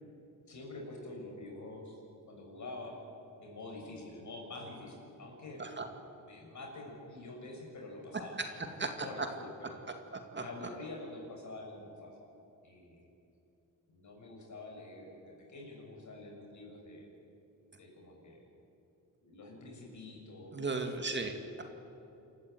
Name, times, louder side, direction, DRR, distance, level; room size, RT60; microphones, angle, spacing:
voice 1, 0.5-2.0 2.3-3.0 3.4-5.6 6.2-9.8 10.3-12.2 12.6-13.1 13.9-17.1 17.8-18.4 19.2-21.1, left 2 dB, 55° left, 1 dB, 6.7 m, -47 dB
voice 2, 10.1-10.4 20.5-21.6, right 3 dB, 35° right, 5 dB, 2.3 m, -36 dB
27.0 x 14.0 x 9.3 m, 2.8 s
cardioid pair, 95°, 34 cm